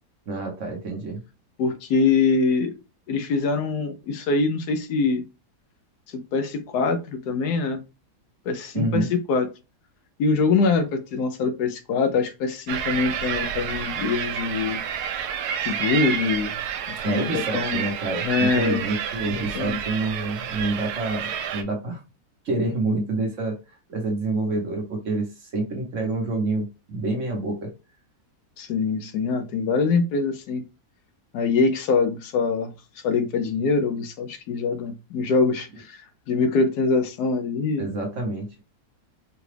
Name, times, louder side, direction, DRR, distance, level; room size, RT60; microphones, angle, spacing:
voice 1, 0.3-1.2 8.7-9.1 17.0-22.0 22.4-23.5 23.9-27.7 37.8-38.6, right 2 dB, 50° right, 1.2 m, -27 dB
voice 2, 1.6-2.7 3.1-5.2 6.3-7.8 8.5-9.5 10.2-14.8 15.6-16.6 17.0-17.8 18.2-18.9 19.3-19.8 28.6-30.6 31.3-32.7 33.0-36.0 36.3-37.9, left 4 dB, 75° left, 1.2 m, -24 dB
sound 1, 12.7-21.6, right 8 dB, 75° right, 1.1 m, -29 dB
4.8 x 2.3 x 3.3 m
omnidirectional pair, 1.8 m